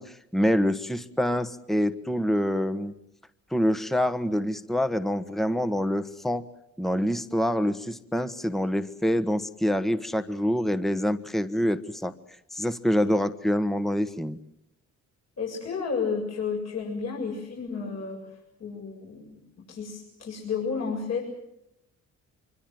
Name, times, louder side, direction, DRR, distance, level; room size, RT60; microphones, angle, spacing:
voice 1, 0.0-2.9 3.5-6.4 6.8-12.1 12.5-14.4, equal, ahead, 11 dB, 1.4 m, -26 dB
voice 2, 15.4-18.2 18.6-21.3, left 5 dB, 60° left, -2 dB, 7.7 m, -32 dB
25.5 x 24.5 x 7.8 m, 0.80 s
cardioid pair, 90°, 30 cm